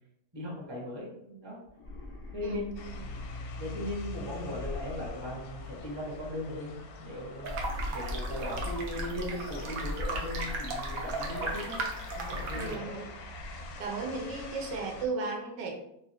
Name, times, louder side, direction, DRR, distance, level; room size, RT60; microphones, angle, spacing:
voice 1, 0.3-1.6 2.3-2.9 3.6-7.6 7.9-11.8 12.1-12.9, left 1 dB, 20° right, -5 dB, 1.0 m, -38 dB
sound 1, 1.7-3.6 4.5-5.9 7.3-9.5 9.8-11.5, left 2 dB, 30° left, 0.8 m, -41 dB
voice 2, 2.4-2.9 12.5-13.2 13.8-15.7, right 4 dB, 85° right, 1 dB, 1.4 m, -35 dB
sound 2, 2.8-15.1, left 3 dB, 70° left, 0.9 m, -44 dB
sound 3, 7.4-12.7, right 2 dB, 65° right, 1.0 m, -36 dB
3.4 x 2.8 x 2.8 m, 0.80 s
omnidirectional pair, 1.8 m